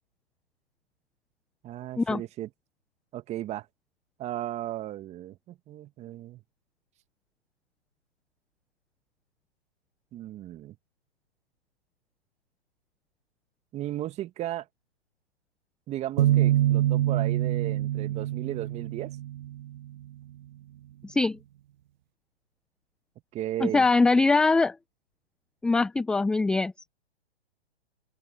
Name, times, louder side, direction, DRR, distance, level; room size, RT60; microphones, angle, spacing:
voice 1, 1.6-2.5 3.1-3.7 4.2-6.4 10.1-10.8 13.7-14.7 15.9-19.2 23.3-23.9, right 13 dB, 20° right, 1.9 m, -35 dB
sound 1, 16.2-19.9, right 13 dB, 45° right, 0.5 m, -25 dB
voice 2, 21.0-21.4 23.6-24.7 25.6-26.7, left 3 dB, 5° left, 0.6 m, -22 dB
open air
hypercardioid pair, 135°, 33 cm